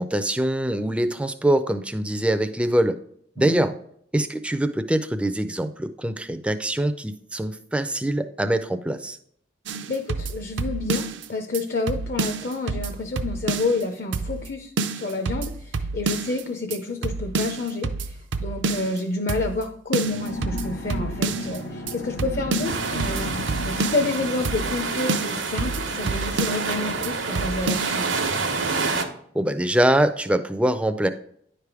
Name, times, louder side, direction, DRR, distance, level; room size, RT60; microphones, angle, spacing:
voice 1, 0.0-3.0 3.4-3.7 4.1-9.2 29.3-31.1, right 1 dB, 5° right, 9 dB, 0.3 m, -23 dB
sound 1, 9.7-11.3 11.5-11.6 11.9-13.8 14.1-14.5 14.8-16.4 16.7-16.8 17.0-19.0 19.3-19.6 19.9-21.6 21.9-22.0 22.2-24.2 24.4-24.8 25.1-26.7 27.0-27.1 27.3-27.9, right 3 dB, 70° right, 0.5 m, -28 dB
voice 2, 9.9-23.3 23.6-28.1, left 3 dB, 50° left, 5 dB, 0.6 m, -29 dB
sound 2, 20.0-28.2, left 1 dB, 85° left, 1.1 m, -36 dB
sound 3, 22.6-29.1, right 4 dB, 90° right, 0.9 m, -28 dB
10.0 x 3.4 x 4.7 m, 0.67 s
head